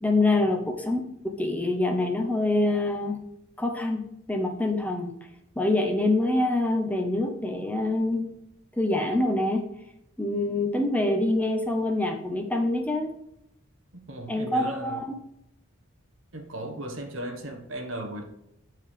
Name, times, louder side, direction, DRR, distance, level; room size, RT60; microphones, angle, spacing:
voice 1, 0.0-3.3 3.6-4.0 4.3-5.1 5.6-8.3 8.7-9.6 10.2-13.1 14.3-15.2, left 2 dB, 10° left, 4 dB, 0.8 m, -25 dB
voice 2, 14.1-15.0 16.3-18.2, right 1 dB, 80° right, 3 dB, 1.5 m, -36 dB
7.7 x 4.7 x 4.9 m, 0.78 s
head